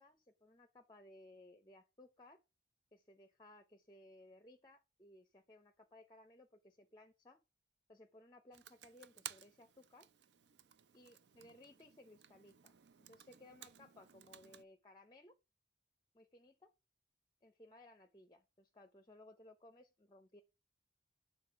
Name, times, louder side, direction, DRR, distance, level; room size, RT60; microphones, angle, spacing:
voice 1, 0.0-2.4 2.9-7.4 7.9-10.1 10.9-12.7 13.1-15.3 16.1-16.7 17.4-20.4, left 1 dB, 25° left, 0.5 m, -61 dB
Computer keyboard, 8.5-14.6, right 10 dB, 70° right, 0.5 m, -56 dB
6.8 x 4.0 x 5.6 m
head